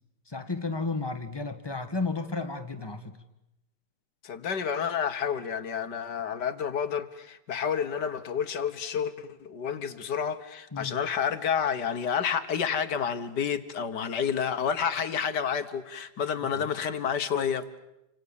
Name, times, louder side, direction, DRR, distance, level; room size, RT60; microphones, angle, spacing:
voice 1, 0.3-3.2 10.7-10.9 16.6-16.7, left 3 dB, 15° left, 1.3 m, -33 dB
voice 2, 4.2-17.6, left 7 dB, 60° left, 1.7 m, -30 dB
29.5 x 25.5 x 7.1 m
omnidirectional pair, 2.2 m